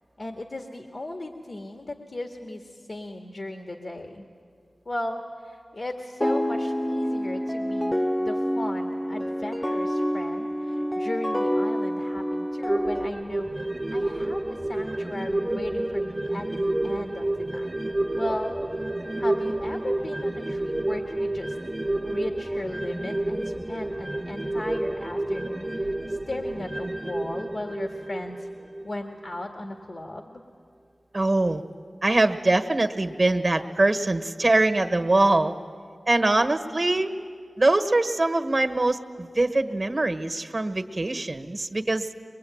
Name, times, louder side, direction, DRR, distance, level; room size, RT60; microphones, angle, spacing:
voice 1, 0.2-4.3 4.9-17.7 18.2-18.5 19.2-21.6 22.0-28.5 28.8-30.4, left 1 dB, 65° left, 2 dB, 1.7 m, -37 dB
sound 1, 6.2-13.1, equal, 20° left, 0.9 m, -27 dB
sound 2, 12.7-29.5 29.8-29.9, right 1 dB, 25° right, 1.1 m, -29 dB
voice 2, 31.1-31.6 32.0-35.5 36.1-37.2 37.6-42.1, right 2 dB, 50° right, 6 dB, 1.5 m, -23 dB
23.0 x 22.0 x 8.8 m, 2.2 s
cardioid pair, 40°, 0 cm